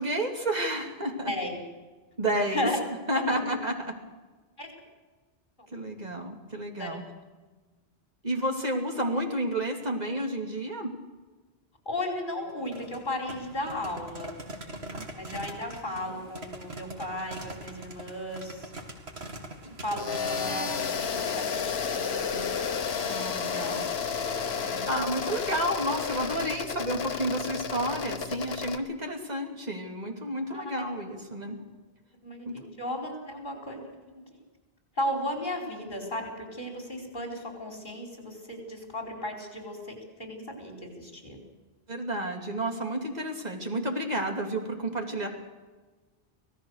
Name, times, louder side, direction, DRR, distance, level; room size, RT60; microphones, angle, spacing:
voice 1, 0.0-1.3 2.2-2.7 3.1-3.9 5.7-7.0 8.2-10.9 14.9-15.1 19.6-19.7 23.0-23.9 24.9-31.6 32.4-32.5 41.9-45.3, right 1 dB, 40° right, 2 dB, 2.9 m, -31 dB
voice 2, 1.3-1.6 2.5-2.8 3.1-3.4 4.6-4.7 6.8-7.0 11.9-14.3 15.2-18.7 19.8-22.6 23.5-23.6 24.5-24.9 30.5-30.7 32.2-34.2 35.0-41.4, left 1 dB, 50° left, 1 dB, 5.1 m, -35 dB
sound 1, 12.5-20.7, right 1 dB, 90° right, 2.6 m, -42 dB
sound 2, 20.0-28.8, left 6 dB, 80° left, 1.3 m, -31 dB
25.5 x 17.5 x 6.6 m, 1.3 s
omnidirectional pair, 1.0 m